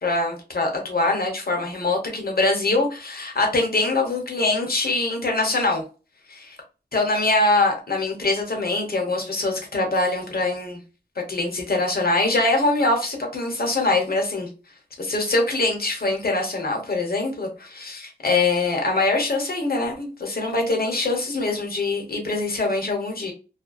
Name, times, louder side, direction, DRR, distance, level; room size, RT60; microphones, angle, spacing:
voice 1, 0.0-5.8 6.3-6.6 6.9-10.8 11.3-14.5 15.0-23.3, left 2 dB, 60° left, 1 dB, 0.9 m, -23 dB
2.5 x 2.2 x 2.3 m, 0.33 s
wide cardioid pair, 80°, 17 cm